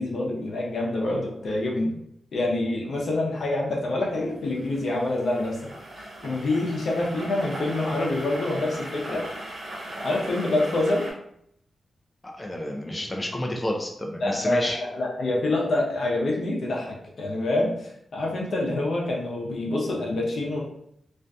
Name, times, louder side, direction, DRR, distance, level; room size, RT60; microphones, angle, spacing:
voice 1, 0.0-1.9 2.3-5.7 6.0-9.2 10.0-11.1 14.2-20.6, left 2 dB, 75° left, -3 dB, 0.6 m, -26 dB
sound 1, 4.3-11.1, right 1 dB, 85° right, 0.8 m, -38 dB
voice 2, 12.2-14.8, left 1 dB, 25° left, 1 dB, 0.4 m, -30 dB
2.5 x 2.5 x 2.2 m, 0.73 s
cardioid pair, 60°, 0 cm